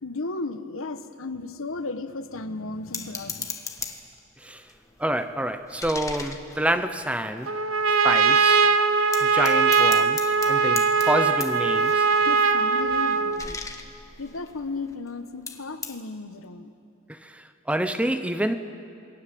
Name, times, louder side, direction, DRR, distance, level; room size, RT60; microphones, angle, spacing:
voice 1, 0.0-3.5 12.1-13.6 14.2-16.7, left 3 dB, 85° left, 1.3 m, -34 dB
sound 1, 2.9-4.2 4.6-7.5 7.9-8.0 8.3-8.6 9.1-15.1 15.5-16.0, left 4 dB, 15° left, 1.4 m, -38 dB
voice 2, 5.0-7.5 8.0-8.7 9.2-12.1 17.1-18.5, right 1 dB, 5° right, 0.8 m, -28 dB
Trumpet, 7.5-13.4, right 5 dB, 90° right, 1.0 m, -21 dB
27.5 x 22.5 x 7.7 m
head